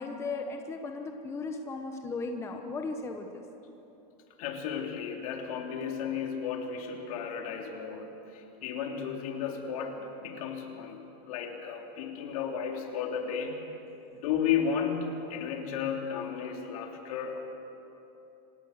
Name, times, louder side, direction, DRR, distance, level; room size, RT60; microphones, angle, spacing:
voice 1, 0.0-3.4, left 3 dB, 15° left, 4 dB, 1.0 m, -36 dB
voice 2, 4.4-13.7 14.1-17.4, left 7 dB, 70° left, 2 dB, 2.9 m, -34 dB
26.5 x 17.5 x 6.5 m, 2.9 s
supercardioid pair, 170°, 19 cm